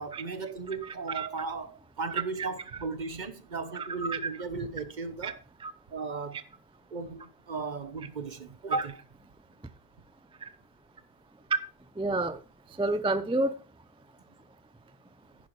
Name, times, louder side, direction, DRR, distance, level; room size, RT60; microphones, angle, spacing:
voice 1, 0.0-5.4 5.9-6.4 6.9-9.0, right 4 dB, 50° right, 1.0 m, -36 dB
voice 2, 0.8-1.3 2.4-2.5 3.7-4.2 5.2-5.3 5.6-5.7 10.4-10.5 12.0-12.4 12.8-13.5, right 2 dB, 10° right, 0.4 m, -30 dB
10.5 x 10.5 x 3.2 m
omnidirectional pair, 1.0 m